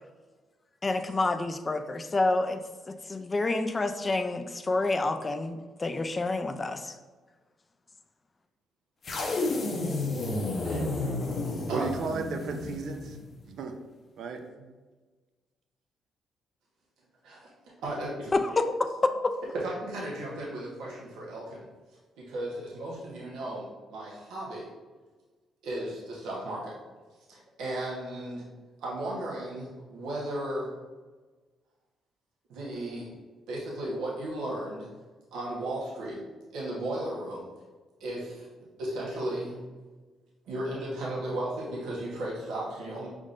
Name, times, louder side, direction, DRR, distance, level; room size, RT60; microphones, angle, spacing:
voice 1, 0.8-2.6 2.9-6.9 18.3-18.7 19.0-19.1, left 2 dB, 25° left, 8 dB, 0.4 m, -28 dB
sound 1, 9.0-13.3, left 2 dB, 45° left, 0.7 m, -31 dB
voice 2, 10.6-11.1 11.7-11.9 17.2-17.5 17.8-18.3 19.5-21.7 22.2-24.7 25.6-26.8 27.3-28.5 28.8-30.7 32.5-33.1 33.5-34.9 35.3-36.2 36.5-37.5 38.0-39.7 40.4-43.1, right 1 dB, 85° right, -5 dB, 1.0 m, -35 dB
voice 3, 11.7-13.2 13.5-13.7 14.2-14.7, right 4 dB, 70° right, 5 dB, 0.5 m, -35 dB
5.3 x 3.6 x 2.5 m, 1.3 s
cardioid pair, 90°, 0 cm